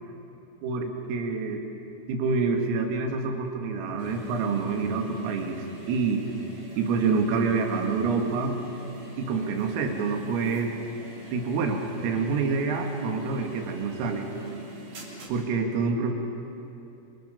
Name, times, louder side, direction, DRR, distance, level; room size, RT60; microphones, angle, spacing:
voice 1, 0.6-1.6 2.1-6.2 6.8-8.6 9.2-10.7 11.3-14.3 15.3-16.1, right 4 dB, 80° right, 3 dB, 4.5 m, -27 dB
sound 1, 4.0-15.3, equal, 45° right, 4.2 m, -43 dB
27.5 x 25.5 x 5.6 m, 2.9 s
omnidirectional pair, 6.0 m